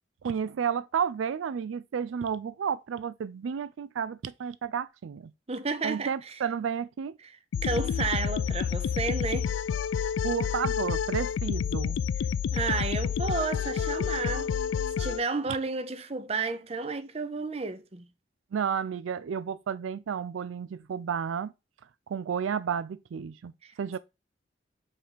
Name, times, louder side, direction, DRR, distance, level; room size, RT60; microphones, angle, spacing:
voice 1, 0.2-5.3 5.8-7.2 10.2-12.0 18.5-21.5 22.1-23.5 23.8-24.0, right 7 dB, 85° right, 0.4 m, -32 dB
voice 2, 5.5-6.4 7.2-7.3 7.6-9.5 12.1-12.3 12.5-14.5 15.0-18.1 23.6-24.0, right 4 dB, 30° right, 0.6 m, -32 dB
sound 1, 7.5-15.2, left 7 dB, 75° left, 0.3 m, -29 dB
5.3 x 3.4 x 5.7 m
head